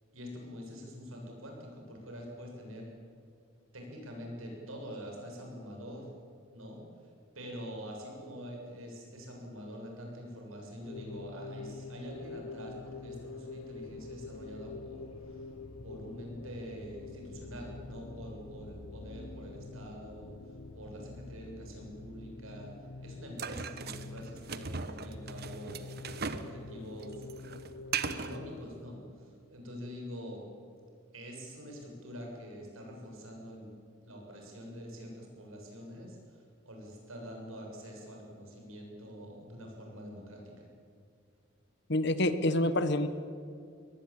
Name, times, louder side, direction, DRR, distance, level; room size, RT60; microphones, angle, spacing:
voice 1, 0.1-2.9 3.7-6.1 6.5-15.5 15.8-22.7 23.0-25.9 26.3-27.2 28.1-30.5 31.1-33.7 34.0-40.6, equal, 85° right, 0 dB, 7.4 m, -45 dB
sound 1, 10.8-28.5, left 3 dB, 85° left, 1.2 m, -46 dB
sound 2, 23.4-26.5 26.8-28.4, right 5 dB, 50° right, 1.2 m, -38 dB
voice 2, 41.9-43.1, left 1 dB, 55° left, 12 dB, 1.4 m, -27 dB
23.0 x 19.0 x 8.9 m, 2.4 s
head